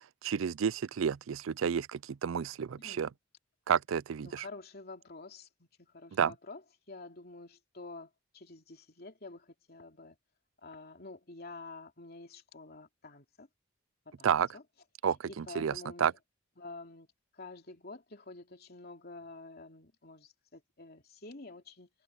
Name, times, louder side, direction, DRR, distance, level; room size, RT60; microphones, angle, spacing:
voice 1, 0.2-3.1 3.7-4.4 6.2-6.3 14.2-14.5 15.0-16.1, right 7 dB, 75° right, 0.4 m, -30 dB
voice 2, 2.8-3.1 4.2-6.6 6.9-10.2 10.6-13.5 14.0-14.6 15.3-16.1 16.6-17.1 17.3-21.9, left 3 dB, 50° left, 3.1 m, -49 dB
head